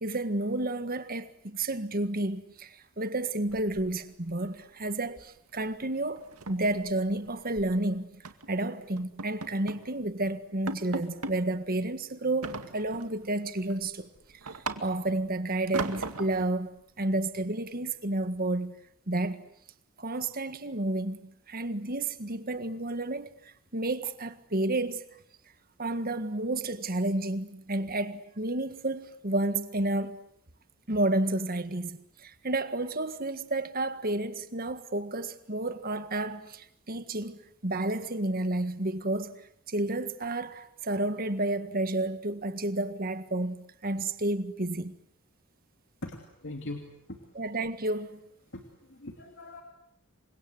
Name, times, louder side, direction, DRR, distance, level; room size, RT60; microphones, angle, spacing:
voice 1, 0.0-8.2 8.5-14.1 14.8-18.8 19.1-19.4 20.0-25.0 25.8-30.2 30.9-39.3 39.7-45.0 47.4-48.2, right 2 dB, 40° right, 1.7 m, -31 dB
sound 1, 3.5-4.3 4.6-4.8 5.2-5.4 5.7-5.8 6.2-7.7 8.2-8.5 9.0-9.9 10.2-10.3 10.7-11.4 12.4-13.2 13.6-15.2 15.7-16.5, right 3 dB, 80° right, 2.1 m, -38 dB
voice 2, 46.0-47.2 48.5-48.6 48.9-49.6, left 2 dB, 55° left, 2.8 m, -41 dB
29.0 x 25.0 x 8.0 m
head